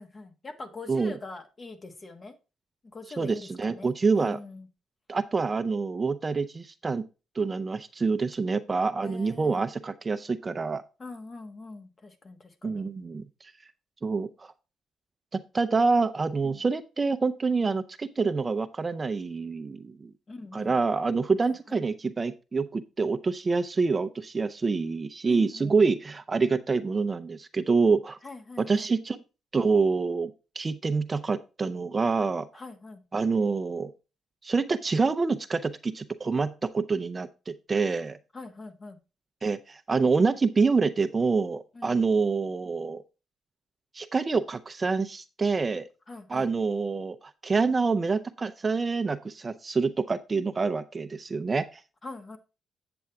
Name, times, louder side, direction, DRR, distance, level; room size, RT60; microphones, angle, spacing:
voice 1, 0.0-2.3 2.9-4.7 9.0-9.6 11.0-12.8 16.4-16.6 20.3-20.7 21.4-21.8 25.2-25.8 28.2-28.9 32.5-33.0 38.3-39.0 41.7-42.0 46.1-46.5 52.0-52.4, left 3 dB, 35° left, 1.5 m, -43 dB
voice 2, 3.2-4.4 5.1-7.0 7.4-10.8 12.6-13.5 14.0-14.5 15.5-20.1 20.5-28.2 28.6-29.2 29.5-30.3 30.6-32.5 33.1-33.9 34.4-38.2 39.4-43.0 43.9-45.9 46.3-51.8, right 4 dB, 30° right, 0.6 m, -26 dB
8.7 x 6.9 x 3.5 m
cardioid pair, 90°, 0 cm